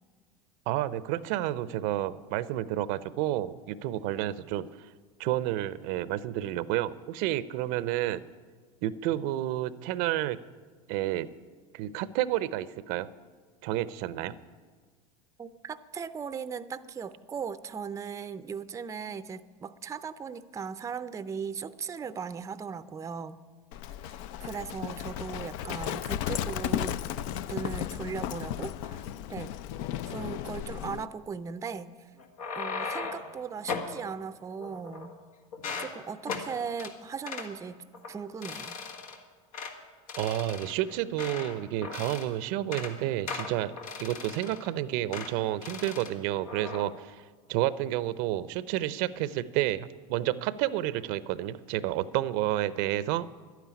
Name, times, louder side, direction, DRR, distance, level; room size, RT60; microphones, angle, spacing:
voice 1, 0.7-4.7 5.2-8.2 8.8-10.4 10.9-11.3 11.7-13.1 13.6-14.3 40.2-43.7 44.0-47.2 47.5-53.3, right 14 dB, 65° right, 16 dB, 0.6 m, -30 dB
voice 2, 15.4-23.4 24.0-27.0 27.5-29.0 29.3-29.5 30.1-31.9 32.5-35.1 35.8-38.8, right 6 dB, 15° right, 13 dB, 0.5 m, -38 dB
Livestock farm animals working animals, 23.7-31.1, left 11 dB, 65° left, 0.6 m, -34 dB
sound 1, 32.2-33.3 33.7-33.9 34.6-35.2 35.5-35.9 36.3-36.5 36.8-36.9 37.3-37.5 37.9-38.1 38.4-39.2 39.5-39.7 40.1-41.5 41.8-42.3 42.6-42.9 43.3-44.7 45.1-45.3 45.6-46.1 46.5-46.8, left 5 dB, 80° left, 1.8 m, -37 dB
11.5 x 9.3 x 9.8 m, 1.5 s
supercardioid pair, 105°, 18 cm